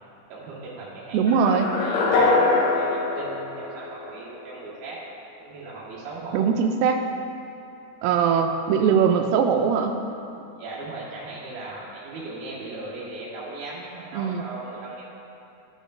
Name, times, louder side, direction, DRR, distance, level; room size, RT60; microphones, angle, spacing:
voice 1, 0.3-5.1 5.4-6.5 10.6-15.1, right 2 dB, 65° right, -7 dB, 3.2 m, -38 dB
voice 2, 1.1-1.7 6.3-7.0 8.0-10.0 14.1-14.4, right 6 dB, 90° right, 5 dB, 2.0 m, -21 dB
sound 1, 1.3-4.4, left 3 dB, 85° left, 2.9 m, -23 dB
13.5 x 5.1 x 2.5 m, 2.8 s
omnidirectional pair, 4.7 m